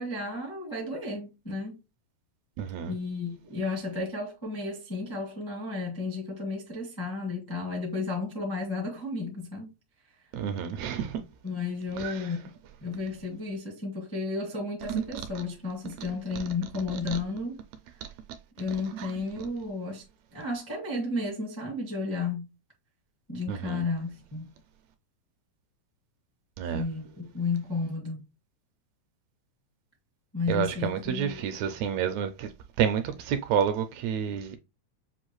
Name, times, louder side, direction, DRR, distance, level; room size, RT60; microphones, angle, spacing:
voice 1, 0.0-1.8 2.9-9.7 11.4-12.4 12.8-17.6 18.6-20.0 20.3-22.5 23.3-24.5 26.7-28.2 30.3-31.5, left 3 dB, 35° left, 0.3 m, -33 dB
voice 2, 2.6-2.9 10.3-11.2 12.0-12.1 14.9-15.2 19.0-19.1 23.5-23.8 26.6-26.8 30.5-32.5 32.8-34.6, right 8 dB, 80° right, 1.7 m, -29 dB
7.0 x 2.4 x 3.0 m
omnidirectional pair, 3.4 m